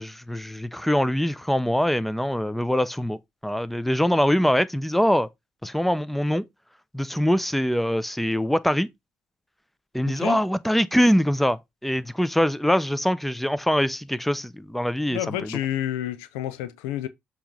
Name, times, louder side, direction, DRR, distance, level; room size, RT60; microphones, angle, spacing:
voice 1, 0.0-5.3 5.6-6.4 6.9-8.9 9.9-15.6, equal, 5° left, 0.7 m, -23 dB
voice 2, 10.1-10.4 15.1-17.1, left 12 dB, 85° left, 0.5 m, -29 dB
7.1 x 3.1 x 5.2 m
hypercardioid pair, 45°, 5 cm